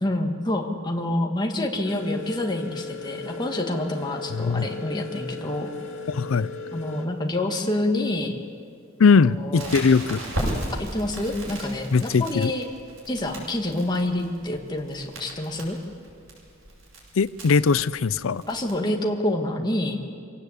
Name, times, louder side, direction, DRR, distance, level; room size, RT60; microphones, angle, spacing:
voice 1, 0.0-5.7 6.7-8.4 9.1-9.7 10.7-12.7 13.1-15.8 18.5-20.0, left 1 dB, 20° left, 2 dB, 1.9 m, -27 dB
sound 1, 1.8-7.1, left 3 dB, 65° left, 2.8 m, -37 dB
voice 2, 4.3-4.7 6.1-6.5 9.0-10.2 11.9-12.5 17.2-18.4, left 5 dB, 85° left, 18 dB, 0.5 m, -20 dB
Crackle, 9.5-18.7, right 1 dB, 90° right, 7.9 m, -36 dB
25.0 x 17.5 x 8.4 m, 2.3 s
head